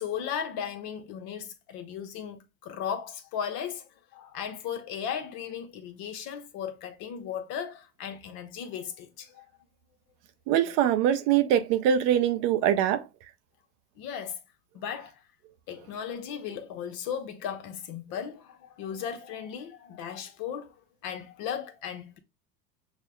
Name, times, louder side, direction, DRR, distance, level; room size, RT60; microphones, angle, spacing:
voice 1, 0.0-9.5 14.0-14.4 14.7-15.2 15.7-20.7 21.0-22.2, left 8 dB, 50° left, 0.9 m, -36 dB
voice 2, 10.5-13.0, right 10 dB, 45° right, 0.4 m, -23 dB
6.3 x 2.1 x 2.2 m
hypercardioid pair, 100°, 46 cm